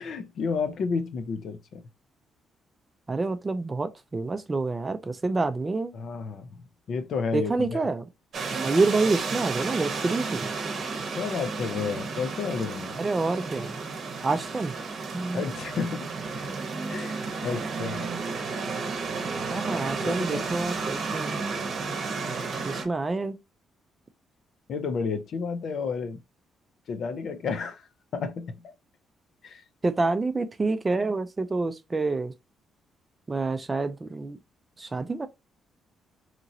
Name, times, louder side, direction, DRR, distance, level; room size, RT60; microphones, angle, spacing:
voice 1, 0.0-1.8 5.9-6.5 6.9-7.8 11.1-13.0 15.3-16.1 16.9-18.1 19.7-20.5 24.7-26.2 26.9-27.9 28.1-28.6 29.4-29.6, left 5 dB, 65° left, 0.6 m, -31 dB
voice 2, 3.1-5.9 7.3-8.0 8.5-10.5 13.0-13.8 14.2-14.7 15.1-15.4 19.5-21.4 22.6-23.4 29.8-32.3 33.3-34.4 34.8-35.3, right 3 dB, 25° right, 0.4 m, -27 dB
sound 1, 8.3-22.9, right 4 dB, 55° right, 0.8 m, -32 dB
2.8 x 2.8 x 2.6 m
cardioid pair, 90°, 0 cm